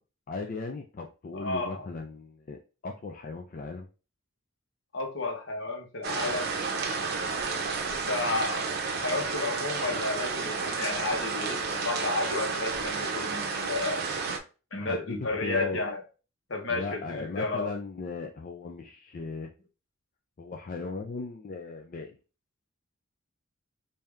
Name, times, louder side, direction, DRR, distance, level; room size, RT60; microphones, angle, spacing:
voice 1, 0.3-3.9 14.3-14.4 14.8-15.8 16.7-19.5 20.4-22.2, left 3 dB, 40° left, 2 dB, 0.4 m, -37 dB
voice 2, 1.3-1.9 4.9-6.5 7.9-8.6 9.0-14.0 14.7-16.0 16.5-17.7, left 3 dB, 70° left, 2 dB, 1.2 m, -32 dB
Tropical Rain - Heavy with dripping on concrete floor, 6.0-14.4, right 4 dB, 50° right, 0.7 m, -31 dB
3.3 x 2.7 x 3.5 m, 0.33 s
head